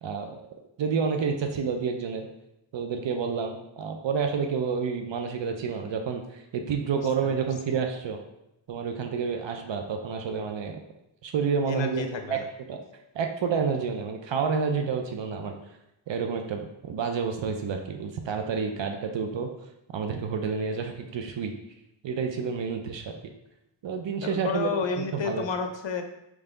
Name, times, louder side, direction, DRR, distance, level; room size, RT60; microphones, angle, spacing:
voice 1, 0.0-0.4 0.8-2.3 2.7-8.2 8.7-10.8 11.2-12.4 12.7-12.8 13.1-15.6 16.1-19.5 19.9-21.5 22.0-23.2 23.8-24.7 25.1-25.4, right 6 dB, 65° right, 4 dB, 0.6 m, -29 dB
voice 2, 11.6-12.4 24.2-26.0, left 5 dB, 60° left, 6 dB, 0.7 m, -31 dB
3.6 x 3.2 x 3.8 m, 0.86 s
cardioid pair, 70°, 49 cm